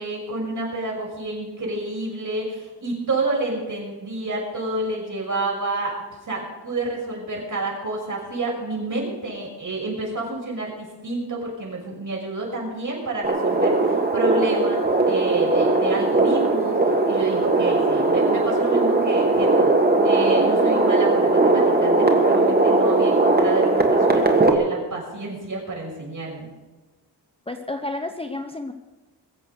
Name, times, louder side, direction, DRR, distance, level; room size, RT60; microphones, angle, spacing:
voice 1, 0.0-6.0 6.2-26.5, right 2 dB, 45° right, -2 dB, 6.1 m, -29 dB
sound 1, 13.2-24.5, right 2 dB, 20° right, 1.7 m, -19 dB
voice 2, 27.5-28.7, left 2 dB, 15° left, 5 dB, 0.7 m, -30 dB
22.0 x 7.7 x 6.7 m, 1.2 s
wide cardioid pair, 135°, 42 cm